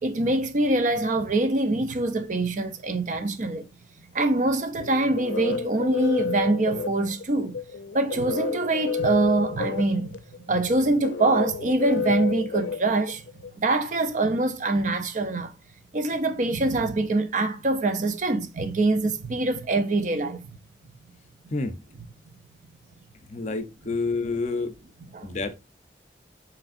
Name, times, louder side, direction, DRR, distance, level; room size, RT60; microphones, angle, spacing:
voice 1, 0.0-3.7 4.1-7.5 7.9-10.2 10.5-13.2 13.6-15.5 15.9-20.5 25.1-25.4, right 2 dB, 45° right, 0.6 m, -24 dB
sound 1, 4.8-13.5, left 4 dB, 85° left, 0.5 m, -30 dB
voice 2, 23.3-24.7 25.2-25.5, left 3 dB, 40° left, 0.5 m, -28 dB
5.2 x 3.2 x 2.5 m
head